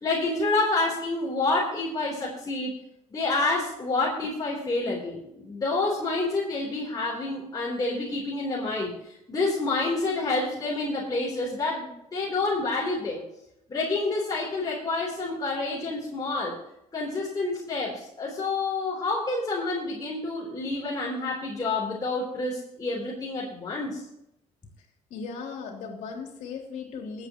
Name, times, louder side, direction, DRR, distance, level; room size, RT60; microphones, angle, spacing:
voice 1, 0.0-2.7 3.1-8.9 9.3-13.2 13.7-16.6 16.9-24.0, left 3 dB, 30° left, -5 dB, 3.4 m, -28 dB
voice 2, 25.1-27.3, left 5 dB, 80° left, 1 dB, 3.0 m, -37 dB
23.5 x 8.2 x 3.0 m, 0.84 s
cardioid pair, 95°, 13 cm